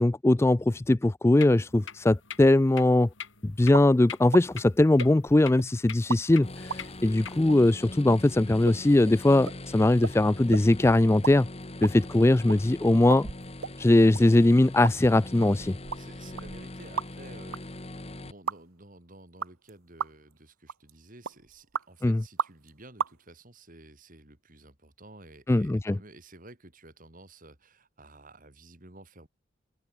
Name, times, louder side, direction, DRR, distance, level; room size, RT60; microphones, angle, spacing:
voice 1, 0.0-3.1 3.4-11.5 11.8-13.3 13.8-15.8 22.0-22.2 25.5-26.0, left 2 dB, 10° left, 0.3 m, -21 dB
sound 1, 1.4-7.4, left 8 dB, 65° left, 5.0 m, -44 dB
sound 2, 3.7-3.9 4.3-4.4 5.0-5.7 6.1-6.2 6.7-6.8 7.5-7.6 8.1-8.2 8.6-8.8 9.1-9.2 9.4-9.6 10.0-10.2 10.5-10.7 11.0-11.4 11.6-12.6 13.1-13.8 14.1-14.2 14.8-15.0 15.4-17.3 17.5-17.6 18.5-18.6 19.4-19.7 20.0-20.3 20.7-20.9 21.2-21.9 22.4-22.7 23.0-23.1, right 6 dB, 85° right, 0.8 m, -34 dB
sound 3, 6.4-18.3, left 1 dB, 30° left, 1.7 m, -42 dB
voice 2, 15.9-17.8 18.1-29.3, right 2 dB, 40° right, 3.0 m, -52 dB
open air
head